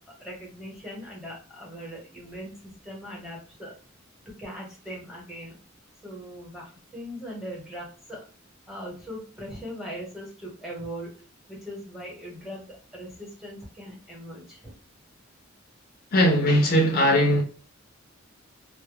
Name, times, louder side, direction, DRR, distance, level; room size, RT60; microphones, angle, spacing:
voice 1, 0.0-3.7 4.4-5.6 6.0-8.2 8.7-11.1 11.5-14.7, equal, ahead, 0.9 m, -40 dB
voice 2, 16.1-17.4, equal, 45° left, 0.4 m, -19 dB
2.1 x 2.0 x 3.1 m
head